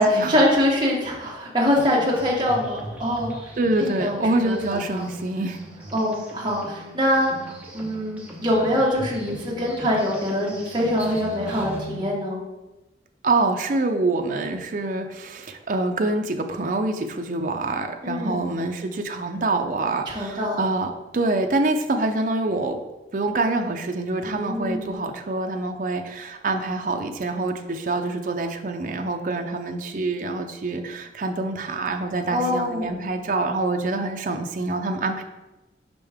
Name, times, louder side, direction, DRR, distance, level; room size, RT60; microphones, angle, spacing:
voice 1, 0.0-3.3 3.8-4.6 4.9-5.1 5.9-12.4 18.0-18.4 20.1-20.6 24.2-25.0 32.3-33.1, left 1 dB, 25° right, -5 dB, 1.5 m, -24 dB
sound 1, 1.6-12.0, right 1 dB, 10° right, 0.9 m, -39 dB
voice 2, 3.6-5.7 13.2-22.8 23.1-35.2, right 2 dB, 50° right, 4 dB, 0.5 m, -26 dB
5.4 x 5.2 x 3.5 m, 1.0 s
head